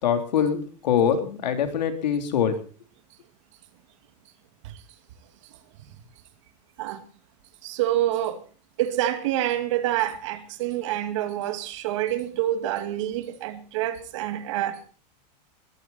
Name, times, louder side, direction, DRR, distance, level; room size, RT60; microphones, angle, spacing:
voice 1, 0.0-2.6, left 8 dB, 90° left, 3.7 m, -23 dB
voice 2, 7.6-8.4 8.8-14.8, right 13 dB, 45° right, 2.2 m, -27 dB
21.5 x 14.0 x 4.3 m
supercardioid pair, 175°, 21 cm